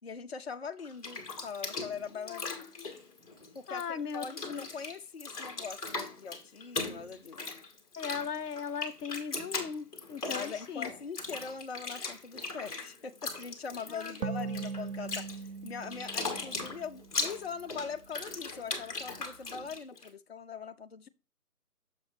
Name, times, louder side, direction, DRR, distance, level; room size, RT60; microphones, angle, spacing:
voice 1, 0.0-2.5 3.5-7.4 10.3-15.3 15.6-21.1, left 5 dB, 45° left, 0.5 m, -42 dB
Bathtub (filling or washing), 0.8-3.8 4.1-20.1, left 3 dB, 25° left, 1.4 m, -39 dB
voice 2, 2.1-3.0 3.7-4.6 7.4-7.6 8.0-10.9 13.9-14.2, left 7 dB, 80° left, 0.8 m, -39 dB
sound 1, 14.2-17.7, right 5 dB, 60° right, 0.5 m, -40 dB
7.1 x 6.8 x 2.7 m
figure-of-eight pair, 155°, 46 cm